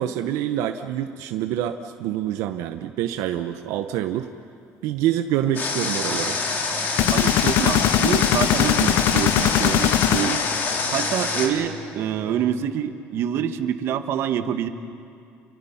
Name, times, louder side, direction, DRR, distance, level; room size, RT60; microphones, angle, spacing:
voice 1, 0.0-4.3 4.8-6.4, right 11 dB, 80° right, 7 dB, 0.8 m, -26 dB
Water, 5.6-11.5, left 4 dB, 40° left, 3.0 m, -26 dB
sound 1, 6.0-12.4, left 1 dB, 15° right, 7.1 m, -43 dB
sound 2, 7.0-10.9, left 13 dB, 65° left, 0.6 m, -21 dB
voice 2, 7.1-10.4 10.9-14.7, right 9 dB, 55° right, 9 dB, 1.2 m, -26 dB
29.5 x 23.0 x 5.8 m, 2.4 s
cardioid pair, 155°, 5 cm